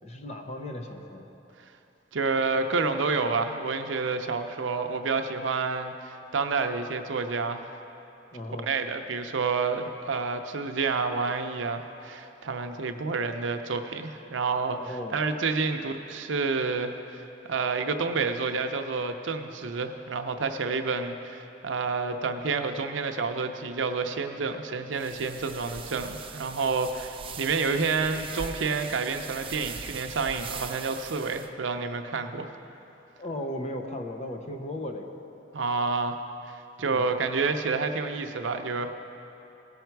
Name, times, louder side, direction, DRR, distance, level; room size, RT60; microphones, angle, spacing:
voice 1, 0.0-1.3 8.3-8.7 14.8-15.2 33.2-35.1 36.9-37.1, left 1 dB, 35° left, 4 dB, 0.8 m, -36 dB
voice 2, 2.1-7.6 8.6-17.2 17.5-32.5 35.5-36.2 36.5-38.9, right 4 dB, 80° right, 7 dB, 0.6 m, -29 dB
sound 1, 25.0-31.5, right 6 dB, 30° right, 0.4 m, -41 dB
17.0 x 5.7 x 4.6 m, 2.9 s
head